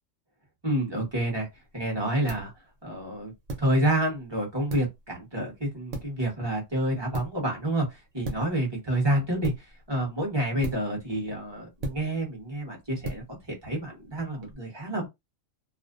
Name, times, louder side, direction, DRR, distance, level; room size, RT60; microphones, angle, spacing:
voice 1, 0.6-1.5 1.7-2.5 2.8-3.3 3.6-7.9 8.1-9.5 9.9-13.4 13.6-15.1, right 1 dB, 25° right, 0.9 m, -28 dB
sound 1, 1.1-14.5, right 1 dB, 80° right, 1.1 m, -41 dB
2.5 x 2.1 x 2.4 m
omnidirectional pair, 1.3 m